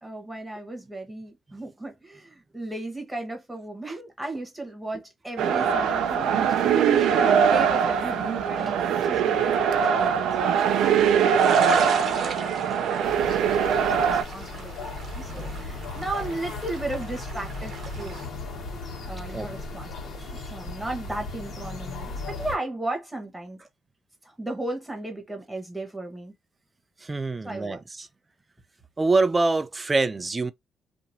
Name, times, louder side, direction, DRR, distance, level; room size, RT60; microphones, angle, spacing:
voice 1, 0.0-11.1 11.9-13.7 14.0-18.3 19.1-23.6 24.2-26.3 27.4-28.1, right 2 dB, 10° right, 1.3 m, -36 dB
sound 1, 5.4-14.2, right 7 dB, 80° right, 0.5 m, -22 dB
sound 2, 10.6-18.3, right 5 dB, 60° right, 0.9 m, -37 dB
sound 3, 13.0-22.6, left 3 dB, 65° left, 1.5 m, -36 dB
voice 2, 27.0-27.8 29.0-30.5, right 3 dB, 25° right, 0.4 m, -24 dB
2.8 x 2.6 x 2.6 m
cardioid pair, 90°, 0 cm